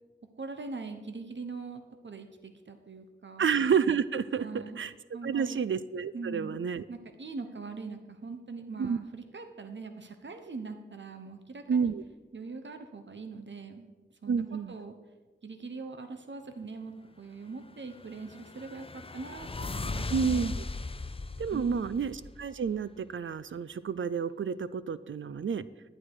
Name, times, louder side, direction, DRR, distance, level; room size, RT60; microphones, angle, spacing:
voice 1, 0.4-3.5 4.4-4.8 5.1-5.6 6.1-6.6 6.9-11.9 12.3-13.9 14.2-14.9 15.4-20.6 21.5-21.9, right 4 dB, 70° right, 7 dB, 1.0 m, -42 dB
voice 2, 3.4-4.5 4.8-4.9 5.2-6.8 8.8-9.0 11.7-12.0 14.3-14.7 20.1-20.5 21.4-25.6, right 6 dB, 90° right, 16 dB, 0.4 m, -29 dB
sound 1, 17.9-22.8, left 3 dB, 30° left, 0.5 m, -38 dB
11.0 x 9.7 x 4.7 m, 1.2 s
wide cardioid pair, 55°, 20 cm